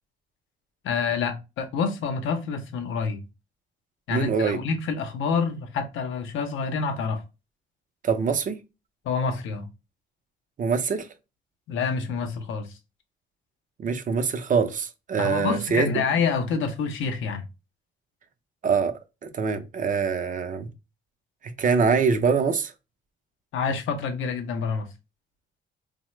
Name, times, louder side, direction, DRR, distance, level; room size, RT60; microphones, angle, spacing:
voice 1, 0.8-3.2 4.1-7.2 9.0-9.7 11.7-12.7 15.2-17.4 23.5-24.9, left 5 dB, 75° left, 0.6 m, -27 dB
voice 2, 4.1-4.6 8.0-8.6 10.6-11.1 13.8-15.9 18.6-18.9 19.2-20.7 21.4-22.7, right 5 dB, 40° right, 0.5 m, -24 dB
3.0 x 2.0 x 3.0 m
cardioid pair, 90°, 20 cm